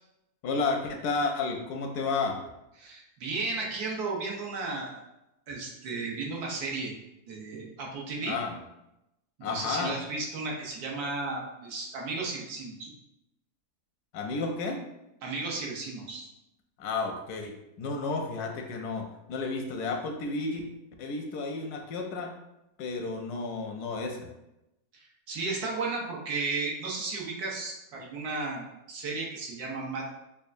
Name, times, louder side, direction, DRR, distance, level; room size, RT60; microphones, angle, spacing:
voice 1, 0.4-2.4 8.2-8.6 9.4-10.0 14.1-14.8 16.8-20.7 21.0-22.4 22.8-24.3, left 4 dB, 85° left, 3 dB, 1.1 m, -32 dB
voice 2, 2.8-5.0 5.5-6.9 7.3-8.4 9.4-12.9 15.2-16.3 24.9-30.1, right 3 dB, 80° right, -2 dB, 1.3 m, -34 dB
5.3 x 2.3 x 2.5 m, 0.90 s
omnidirectional pair, 1.7 m